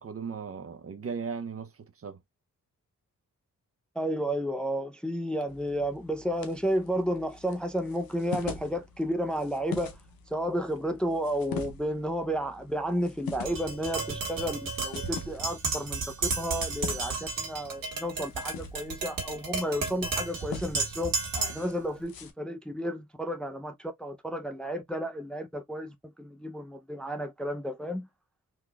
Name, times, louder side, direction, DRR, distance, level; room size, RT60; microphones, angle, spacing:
voice 1, 0.0-2.2, right 6 dB, 40° right, 0.6 m, -37 dB
voice 2, 4.0-10.0 10.3-21.1 21.5-28.1, equal, 5° left, 0.5 m, -32 dB
sound 1, 5.5-22.3, left 5 dB, 90° left, 0.7 m, -44 dB
Tap, 13.5-21.7, right 4 dB, 70° right, 1.7 m, -33 dB
3.9 x 2.9 x 2.3 m
cardioid pair, 70°, 35 cm